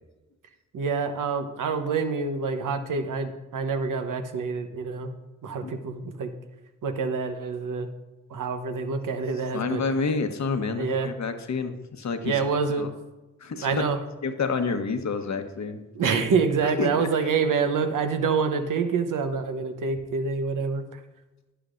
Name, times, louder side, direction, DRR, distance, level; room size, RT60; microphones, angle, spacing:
voice 1, 0.7-5.1 5.4-6.3 6.8-7.9 8.3-9.8 10.8-11.1 12.2-12.9 13.6-14.0 15.9-21.0, right 5 dB, 70° right, 7 dB, 1.0 m, -26 dB
voice 2, 9.5-12.4 12.8-12.9 13.4-13.9 14.2-15.8 16.8-17.1, left 4 dB, 55° left, 7 dB, 1.1 m, -28 dB
11.0 x 10.0 x 2.6 m, 1.1 s
supercardioid pair, 40°, 33 cm